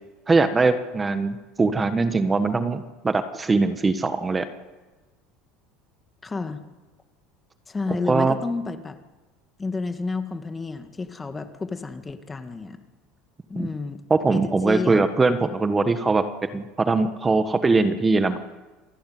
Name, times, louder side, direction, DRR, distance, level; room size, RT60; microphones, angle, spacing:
voice 1, 0.3-4.4 8.1-8.3 13.6-13.7 14.1-16.2 16.5-18.4, right 3 dB, 20° right, 10 dB, 1.5 m, -21 dB
voice 2, 6.2-6.6 7.7-9.0 9.6-12.8 13.5-14.0 14.3-15.0, left 3 dB, 20° left, 8 dB, 2.0 m, -30 dB
28.0 x 11.5 x 9.5 m, 1.2 s
supercardioid pair, 95°, 0 cm